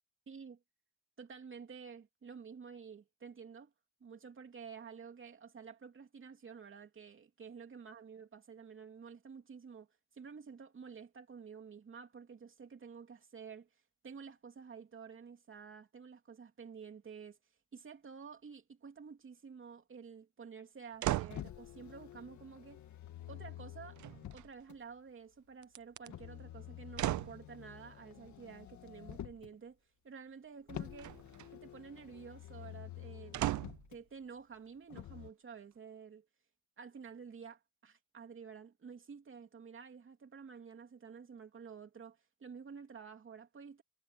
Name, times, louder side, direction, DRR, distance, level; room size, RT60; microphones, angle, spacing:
voice 1, 0.3-0.6 1.2-3.7 4.0-9.9 10.1-13.7 14.0-17.4 17.7-22.8 23.3-24.0 24.3-29.8 30.0-31.2 31.5-33.6 33.9-36.2 36.8-43.8, right 6 dB, 40° right, 3.1 m, -51 dB
sound 1, 21.0-21.5 24.0-24.7 25.6-26.1 26.9-27.4 31.0-31.5 33.3-33.9 34.5-34.6, right 14 dB, 75° right, 0.9 m, -36 dB
Motor vehicle (road), 21.3-24.8 26.1-29.5 30.7-34.0 34.9-35.3, left 11 dB, 70° left, 2.1 m, -49 dB
cardioid pair, 90°, 30 cm